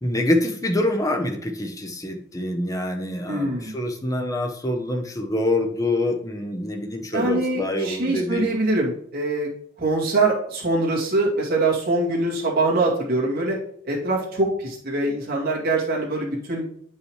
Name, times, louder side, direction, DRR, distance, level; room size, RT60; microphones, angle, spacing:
voice 1, 0.0-8.5, left 1 dB, 20° left, 4 dB, 0.8 m, -25 dB
voice 2, 3.3-3.7 7.1-9.5 9.8-13.6 13.8-16.6, right 2 dB, 50° right, -4 dB, 2.2 m, -23 dB
8.7 x 5.4 x 3.2 m, 0.63 s
head